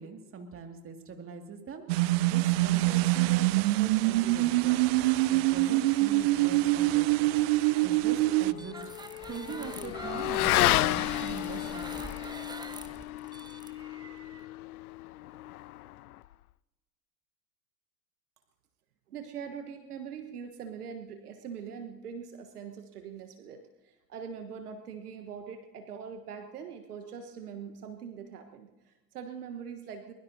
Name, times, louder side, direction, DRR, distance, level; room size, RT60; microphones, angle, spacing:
voice 1, 0.0-4.8 5.3-8.8 9.3-12.3, right 5 dB, 25° right, 5 dB, 2.3 m, -42 dB
sound 1, 1.9-8.5, right 18 dB, 45° right, 0.4 m, -25 dB
Motorcycle / Accelerating revving vroom, 7.6-16.3, left 16 dB, 65° left, 0.5 m, -32 dB
sound 2, 8.5-14.4, right 3 dB, 10° right, 0.9 m, -44 dB
voice 2, 19.1-30.1, right 7 dB, 70° right, 6 dB, 1.4 m, -42 dB
22.5 x 21.5 x 2.8 m, 1.1 s
figure-of-eight pair, 80°, 47 cm